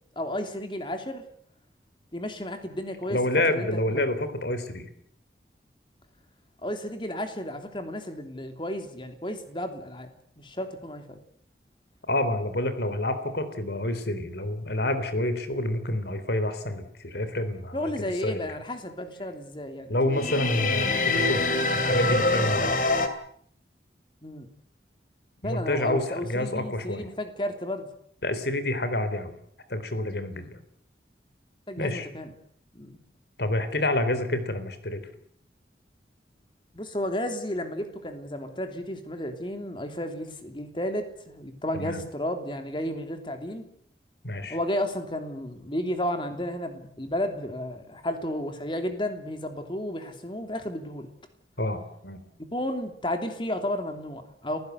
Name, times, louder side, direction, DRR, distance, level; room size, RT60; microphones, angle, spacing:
voice 1, 0.1-1.3 2.1-3.2 3.5-4.0 6.6-11.2 17.7-20.7 24.2-24.5 25.4-27.9 30.3-30.5 31.7-32.3 32.7-33.0 36.7-43.7 44.5-51.1 52.5-54.6, left 1 dB, 30° left, 6 dB, 3.1 m, -33 dB
voice 2, 3.1-4.9 12.1-18.5 19.9-21.4 21.7-22.8 25.4-27.1 28.2-29.3 29.7-30.6 31.8-32.1 33.4-35.0 41.7-42.0 44.2-44.6 51.6-52.2, left 1 dB, 70° left, 11 dB, 3.6 m, -28 dB
sound 1, 20.1-23.1, left 2 dB, 50° left, 2.8 m, -24 dB
30.0 x 16.0 x 8.1 m, 0.65 s
head